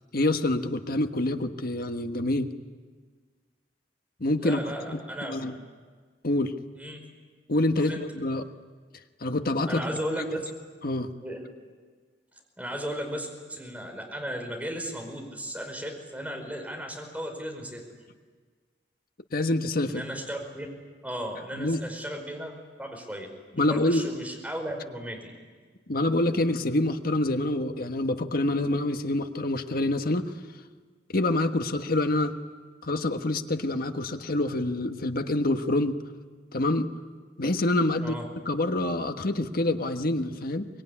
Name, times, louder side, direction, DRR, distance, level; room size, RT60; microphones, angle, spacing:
voice 1, 0.1-2.5 4.2-4.6 4.9-5.0 5.3-5.5 6.2-6.5 7.5-8.5 9.2-9.9 10.8-11.1 19.3-20.0 21.5-21.8 23.6-24.1 25.9-30.3 31.1-32.4 32.8-36.0 36.5-36.9 37.4-38.1 38.4-40.7, left 2 dB, 55° left, 7 dB, 1.4 m, -26 dB
voice 2, 4.4-5.5 6.7-7.0 7.7-8.0 9.7-10.4 11.2-11.4 12.6-17.8 19.9-20.7 21.0-22.5 22.8-25.3 38.0-38.2, equal, 10° right, 2 dB, 5.0 m, -35 dB
24.5 x 21.5 x 10.0 m, 1.5 s
head